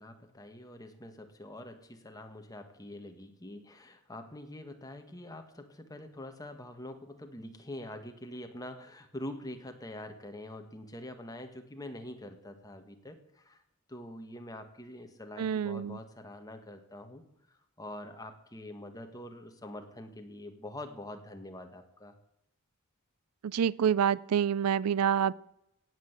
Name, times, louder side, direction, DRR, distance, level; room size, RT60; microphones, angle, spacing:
voice 1, 0.0-13.6 13.9-17.2 17.8-22.2, left 1 dB, 15° left, 5 dB, 1.6 m, -45 dB
voice 2, 15.4-16.0 23.4-25.3, right 8 dB, 90° right, 22 dB, 0.4 m, -27 dB
17.0 x 7.9 x 8.1 m, 0.82 s
head